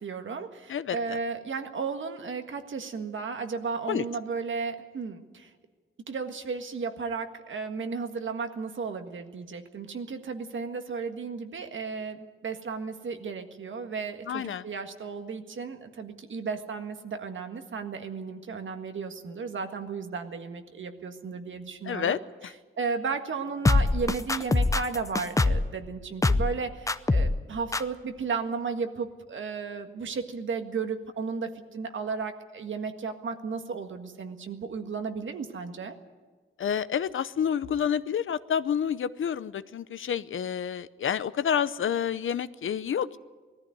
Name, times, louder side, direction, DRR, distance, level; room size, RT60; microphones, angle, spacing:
voice 1, 0.0-5.5 6.1-22.2 22.8-36.0, right 5 dB, 70° right, 6 dB, 1.7 m, -34 dB
voice 2, 0.7-1.2 3.9-4.0 14.3-14.7 21.9-22.5 36.6-43.2, left 8 dB, 75° left, 15 dB, 0.7 m, -29 dB
sound 1, 23.6-25.7 26.2-26.6 26.9-27.4 27.7-27.8, left 2 dB, 15° left, 0.6 m, -23 dB
20.0 x 14.5 x 9.4 m, 1.4 s
wide cardioid pair, 145°, 21 cm